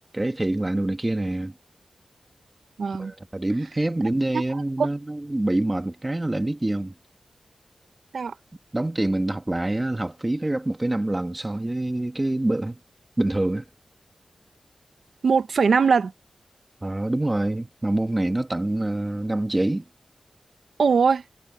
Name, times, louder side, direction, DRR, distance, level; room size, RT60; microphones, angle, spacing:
voice 1, 0.1-1.5 3.0-6.9 8.7-12.8 13.2-13.6 16.8-19.8, right 1 dB, 20° right, 1.4 m, -26 dB
voice 2, 2.8-3.1 4.3-4.4 4.8-4.9 8.1-8.3 15.2-16.1 20.8-21.2, right 5 dB, 80° right, 1.0 m, -20 dB
wide cardioid pair, 115°, 0 cm